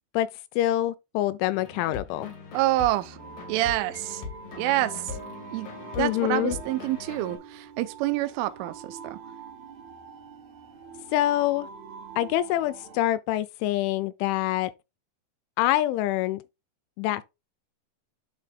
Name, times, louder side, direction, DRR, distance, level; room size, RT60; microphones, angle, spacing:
voice 1, 0.1-2.3 6.0-6.6 11.1-11.7 12.2-14.7 15.6-16.4 17.0-17.2, left 14 dB, 85° left, 2.9 m, -26 dB
sound 1, 1.5-7.4, left 4 dB, 55° left, 3.1 m, -41 dB
voice 2, 2.5-3.2 3.5-4.2 4.6-5.2 5.5-5.7 6.0-9.2, right 16 dB, 85° right, 3.1 m, -27 dB
sound 2, 3.2-13.0, right 5 dB, 60° right, 3.8 m, -45 dB
11.5 x 4.6 x 2.2 m
omnidirectional pair, 5.6 m